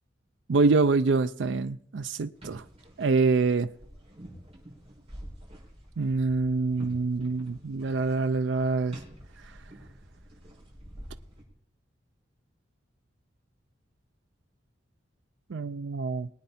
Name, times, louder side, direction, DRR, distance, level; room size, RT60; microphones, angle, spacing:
voice 1, 0.5-2.6 3.0-3.7 6.0-9.0 15.5-16.3, right 3 dB, 70° right, 0.5 m, -25 dB
sound 1, 2.3-11.4, equal, 30° right, 5.8 m, -48 dB
22.0 x 9.2 x 4.2 m
head